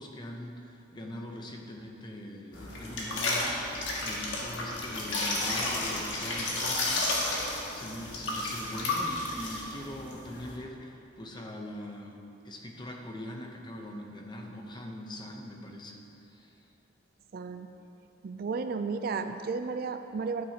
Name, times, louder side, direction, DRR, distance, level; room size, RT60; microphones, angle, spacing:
voice 1, 0.0-12.2 12.4-16.0 16.3-16.7, left 1 dB, 25° left, 1 dB, 0.7 m, -42 dB
sound 1, 2.5-10.6, left 2 dB, 75° left, 1.4 m, -32 dB
voice 2, 17.3-17.7 18.2-20.5, right 4 dB, 50° right, 8 dB, 0.3 m, -33 dB
11.0 x 8.9 x 2.8 m, 2.8 s
head